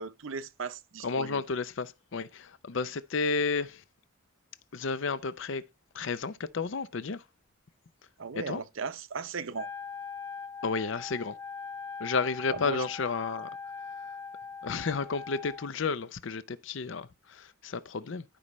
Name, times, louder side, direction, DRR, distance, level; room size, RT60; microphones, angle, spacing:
voice 1, 0.0-1.4 8.2-9.7 12.5-12.8, right 5 dB, 65° right, 0.7 m, -37 dB
voice 2, 1.0-3.8 4.7-5.6 5.9-7.2 8.5-8.6 10.6-11.4 12.0-13.5 14.6-18.2, left 4 dB, 60° left, 0.6 m, -32 dB
Wind instrument woodwind instrument, 9.5-15.7, left 5 dB, 15° left, 0.6 m, -41 dB
13.0 x 5.4 x 3.1 m
head